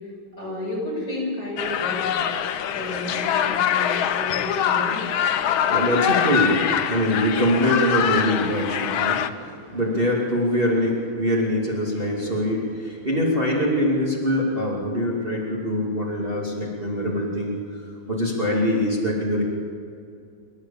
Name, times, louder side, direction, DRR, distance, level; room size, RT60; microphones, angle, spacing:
voice 1, 0.4-2.3 2.7-5.1, left 2 dB, 50° left, -4 dB, 7.7 m, -31 dB
sound 1, 1.6-9.3, left 9 dB, 75° left, 1.6 m, -24 dB
voice 2, 2.6-3.1 5.4-17.6 18.1-19.4, equal, 25° right, -4 dB, 2.8 m, -24 dB
28.0 x 13.0 x 7.2 m, 2.4 s
omnidirectional pair, 2.3 m